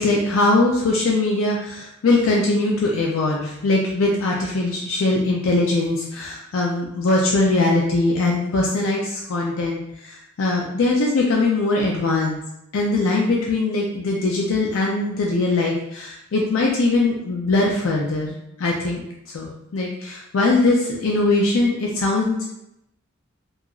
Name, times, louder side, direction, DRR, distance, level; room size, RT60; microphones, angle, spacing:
voice 1, 0.0-12.4 12.7-18.3 18.6-19.0 19.3-22.5, left 2 dB, 80° left, -2 dB, 0.4 m, -21 dB
2.8 x 2.4 x 2.4 m, 0.82 s
head